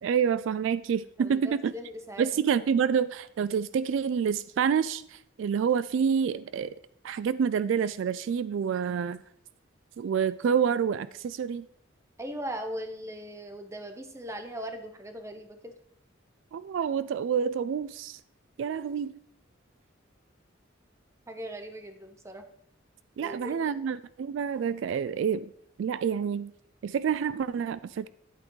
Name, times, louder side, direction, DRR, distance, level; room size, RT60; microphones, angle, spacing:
voice 1, 0.0-1.7 2.2-6.7 7.0-9.2 10.0-11.7 16.5-18.2 18.6-19.1 23.2-25.5 25.8-26.5 26.8-28.1, right 7 dB, 70° right, 0.3 m, -28 dB
voice 2, 1.2-2.3 12.2-15.7 21.3-22.4 23.2-23.6, equal, 15° right, 0.8 m, -39 dB
10.0 x 8.6 x 3.1 m
head